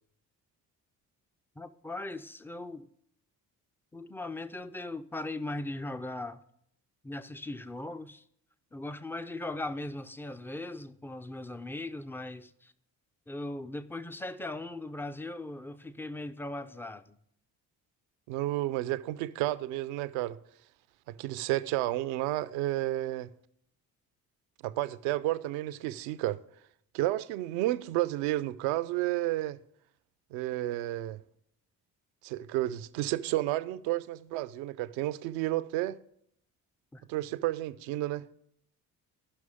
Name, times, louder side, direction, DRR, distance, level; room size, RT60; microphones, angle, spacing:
voice 1, 1.6-2.9 3.9-6.4 7.0-8.2 8.7-12.7 13.3-17.2 36.9-37.0, left 2 dB, 5° left, 0.3 m, -39 dB
voice 2, 18.3-20.4 21.1-23.3 24.6-26.4 26.9-29.6 30.3-31.2 32.2-36.0 37.1-38.3, right 15 dB, 65° right, 0.6 m, -31 dB
15.5 x 6.1 x 3.6 m
figure-of-eight pair, 45°, 49 cm